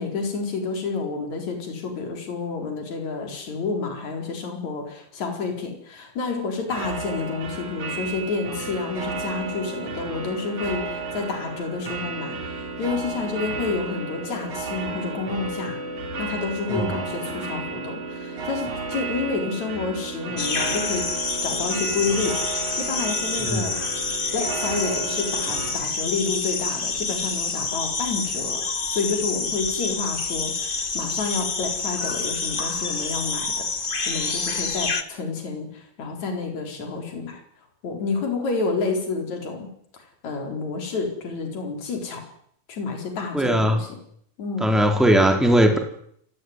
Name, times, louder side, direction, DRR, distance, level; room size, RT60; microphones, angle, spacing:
voice 1, 0.0-15.8 16.2-21.0 21.4-23.7 24.3-28.6 28.9-33.7 34.1-37.4 37.8-39.7 39.9-42.2 42.7-43.9 44.4-44.7, left 4 dB, 55° left, 3 dB, 5.6 m, -29 dB
sound 1, 6.7-25.7, right 4 dB, 60° right, 4.7 m, -32 dB
sound 2, 20.4-35.0, left 4 dB, 80° left, 0.4 m, -28 dB
voice 2, 43.3-43.8 44.6-45.8, equal, ahead, 3 dB, 3.4 m, -19 dB
27.5 x 16.5 x 9.7 m, 0.68 s
omnidirectional pair, 3.9 m